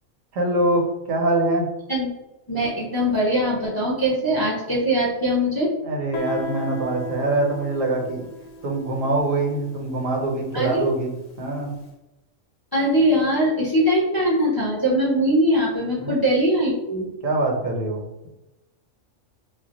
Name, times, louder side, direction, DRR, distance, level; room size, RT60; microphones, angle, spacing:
voice 1, 0.3-1.7 5.8-8.3 8.6-11.7 16.0-16.1 17.2-18.3, right 2 dB, 85° right, 0 dB, 1.1 m, -24 dB
voice 2, 2.5-5.7 10.5-10.9 12.7-17.1, equal, 25° left, -5 dB, 0.5 m, -21 dB
Guitar, 6.1-11.6, left 1 dB, 65° left, 0.8 m, -37 dB
2.5 x 2.1 x 3.9 m, 0.95 s
omnidirectional pair, 1.3 m